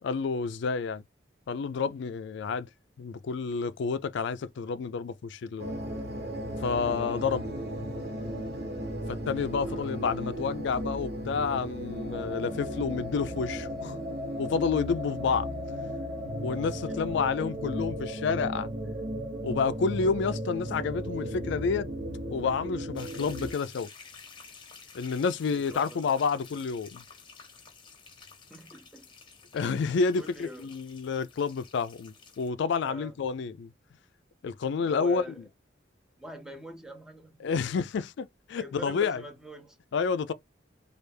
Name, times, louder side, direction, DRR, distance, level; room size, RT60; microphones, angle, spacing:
voice 1, 0.0-1.0 1.5-2.7 3.0-5.7 6.6-7.5 9.1-14.0 14.4-15.5 16.4-18.7 19.4-21.9 22.3-23.9 24.9-27.0 29.5-33.7 34.4-35.2 37.4-39.2 39.9-40.3, left 5 dB, 65° left, 0.4 m, -29 dB
sound 1, 5.6-23.5, equal, 60° right, 0.9 m, -35 dB
voice 2, 18.3-18.6 25.5-26.2 28.5-29.1 30.2-30.8 32.8-33.1 34.8-35.5 36.2-37.6 38.6-39.8, right 1 dB, 5° right, 0.6 m, -44 dB
sound 2, 23.0-32.5, left 5 dB, 25° left, 0.8 m, -51 dB
3.2 x 2.4 x 3.3 m
head